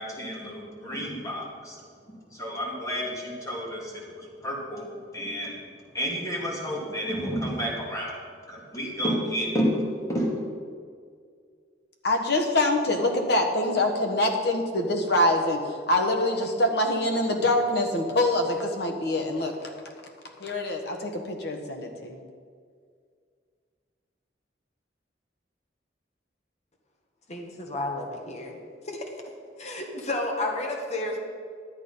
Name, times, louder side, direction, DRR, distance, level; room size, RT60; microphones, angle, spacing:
voice 1, 0.0-1.8 2.4-3.9 4.4-5.6 5.9-8.1 8.5-9.8 10.1-10.3, equal, 20° left, -3 dB, 2.5 m, -30 dB
voice 2, 12.0-19.7 20.4-22.2, left 1 dB, 65° left, 2 dB, 1.4 m, -25 dB
voice 3, 27.3-28.6 28.8-29.0 29.6-31.2, left 2 dB, 40° left, 1 dB, 1.4 m, -31 dB
11.5 x 8.4 x 5.5 m, 2.1 s
head